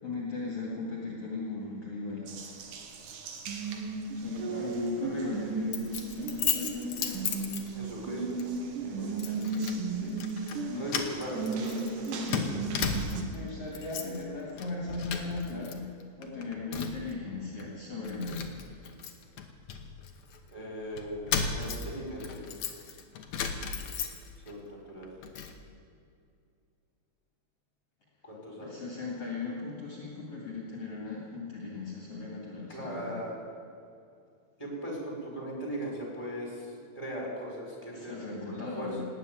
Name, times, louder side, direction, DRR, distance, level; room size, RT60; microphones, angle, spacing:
voice 1, 0.0-2.6 2.9-3.1 4.1-7.2 8.7-9.5 9.9-10.2 10.7-11.1 13.3-18.7 28.6-33.2 37.9-39.1, left 3 dB, 50° left, -4 dB, 3.0 m, -38 dB
Water tap faucet, 2.3-13.2, right 4 dB, 90° right, 2.9 m, -35 dB
Keys jangling, 5.7-8.0 8.4-8.6 9.2-9.8 10.1-10.6 10.9-13.4 13.7-14.2 14.5-15.7 16.0-17.1 17.6-17.7 18.0-20.4 21.0-24.5 24.9-25.6, left 6 dB, 65° left, 2.2 m, -35 dB
voice 2, 7.7-8.3 9.0-9.2 10.7-12.6 20.5-22.5 24.4-25.1 28.2-28.8 32.7-33.4 34.6-38.9, equal, 10° left, -3 dB, 4.8 m, -39 dB
19.0 x 7.8 x 9.2 m, 2.4 s
omnidirectional pair, 3.6 m